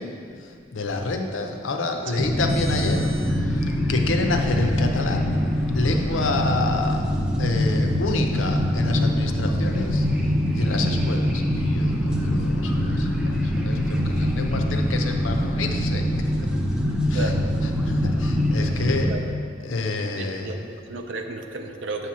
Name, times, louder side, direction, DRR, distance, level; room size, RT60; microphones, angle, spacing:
voice 1, 0.0-3.1 3.4-5.3 5.7-7.0 7.4-10.1 10.5-16.1 17.1-17.3 17.8-19.1 19.6-20.7, left 3 dB, 70° left, 3 dB, 0.6 m, -28 dB
sound 1, 2.2-19.1, equal, 5° right, 0.4 m, -23 dB
voice 2, 17.1-17.5 19.1-19.3 20.0-20.6 20.9-22.1, right 2 dB, 65° right, 5 dB, 0.5 m, -33 dB
7.8 x 2.9 x 6.0 m, 2.3 s
head